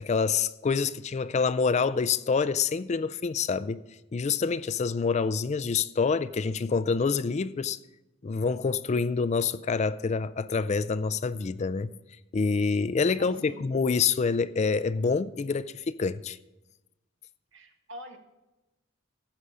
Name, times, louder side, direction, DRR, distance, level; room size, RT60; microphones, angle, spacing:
voice 1, 0.0-3.8 4.1-7.8 8.2-11.9 12.3-16.4, left 5 dB, 35° left, 0.4 m, -27 dB
voice 2, 13.2-13.7 17.5-18.2, equal, 75° right, 1.7 m, -45 dB
13.0 x 8.2 x 4.9 m
head